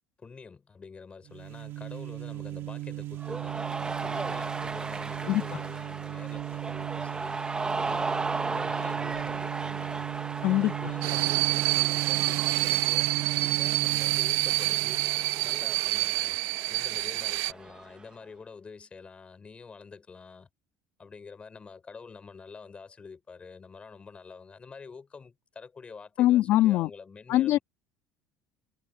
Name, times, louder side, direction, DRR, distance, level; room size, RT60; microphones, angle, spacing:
voice 1, 0.2-13.1 13.4-15.1 15.4-16.4 16.7-20.5 21.0-27.6, left 5 dB, 25° left, 6.0 m, -47 dB
sound 1, 1.3-15.8, right 15 dB, 55° right, 2.3 m, -37 dB
Cheering, 3.2-18.0, right 3 dB, 15° right, 1.4 m, -36 dB
sound 2, 11.0-17.5, right 24 dB, 75° right, 0.4 m, -27 dB
voice 2, 26.2-26.9 27.3-27.6, left 14 dB, 65° left, 1.8 m, -22 dB
cardioid pair, 115°, 5 cm